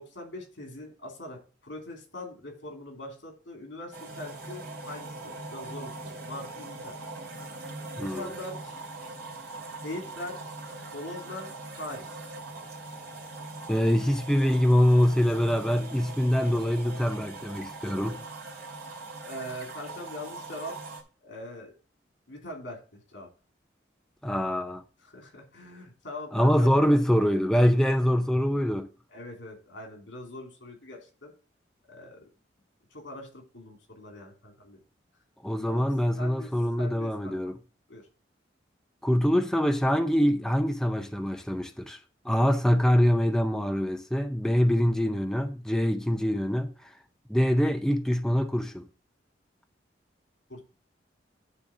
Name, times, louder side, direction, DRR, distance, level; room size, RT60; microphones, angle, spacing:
voice 1, 0.0-6.9 8.0-8.8 9.8-10.6 10.9-12.1 19.2-20.8 21.2-21.7 22.3-23.3 25.0-26.7 29.1-31.3 31.9-32.3 32.9-34.8 35.6-35.9 36.2-36.5 36.8-37.5 37.9-38.1 50.5-50.6, left 1 dB, 85° left, 2.8 m, -42 dB
sound 1, 3.9-21.0, right 2 dB, 60° right, 2.5 m, -41 dB
voice 2, 8.0-8.3 13.7-18.2 24.2-24.8 26.3-28.9 35.4-37.6 39.0-42.0 42.2-46.9 47.3-48.9, equal, 5° left, 0.5 m, -24 dB
9.6 x 3.5 x 6.0 m
head